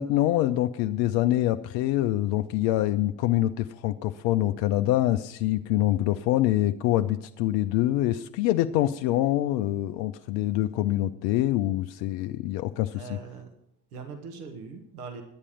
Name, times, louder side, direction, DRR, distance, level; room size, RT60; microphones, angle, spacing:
voice 1, 0.0-13.0, left 14 dB, 40° left, 8 dB, 0.5 m, -25 dB
voice 2, 12.9-13.5 13.9-15.2, right 5 dB, 70° right, 5 dB, 1.6 m, -41 dB
10.5 x 9.8 x 6.4 m, 0.78 s
figure-of-eight pair, 65°, 47 cm